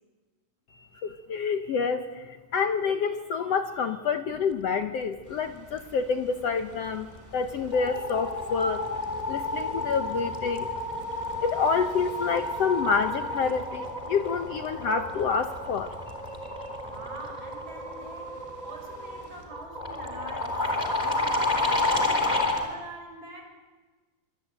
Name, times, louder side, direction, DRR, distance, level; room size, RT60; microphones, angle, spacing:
voice 1, 0.7-8.9 9.3-10.7 11.4-15.9 16.4-16.7, left 5 dB, 65° left, 8 dB, 1.6 m, -28 dB
sound 1, 5.2-19.4, equal, 5° right, 6.2 m, -53 dB
sound 2, 6.9-7.2 7.4-22.7, left 2 dB, 10° left, 3.2 m, -31 dB
voice 2, 16.7-23.4, right 2 dB, 25° right, 3 dB, 6.1 m, -46 dB
25.5 x 25.0 x 9.0 m, 1.3 s
omnidirectional pair, 4.0 m